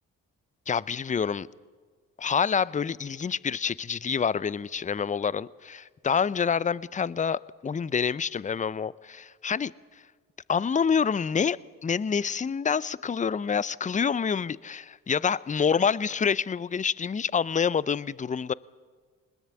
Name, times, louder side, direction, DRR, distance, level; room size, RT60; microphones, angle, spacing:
voice 1, 0.7-1.5 2.2-9.7 10.5-11.6 11.8-18.5, left 6 dB, 20° left, 0.5 m, -27 dB
21.0 x 20.0 x 7.2 m
hypercardioid pair, 50°, 37 cm